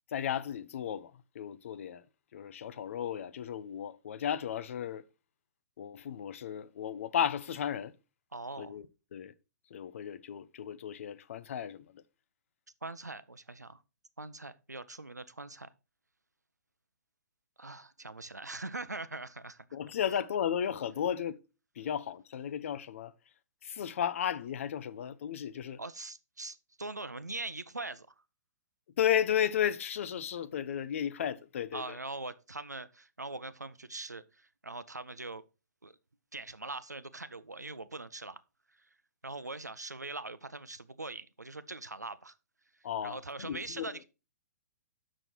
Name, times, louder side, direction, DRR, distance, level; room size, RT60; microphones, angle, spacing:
voice 1, 0.1-2.0 2.3-5.0 5.8-7.9 8.6-8.8 9.1-9.3 9.7-12.0 19.7-21.4 21.8-23.1 23.6-25.8 29.0-32.0 42.8-43.8, left 9 dB, 50° left, 0.6 m, -34 dB
voice 2, 8.3-8.8 12.8-13.8 14.2-15.7 17.6-19.7 25.8-28.1 31.7-35.5 35.8-36.0 36.3-38.4 38.7-38.9 39.2-42.4 42.7-44.0, right 2 dB, 90° right, 0.6 m, -42 dB
6.6 x 6.2 x 4.5 m
figure-of-eight pair, 120°, 9 cm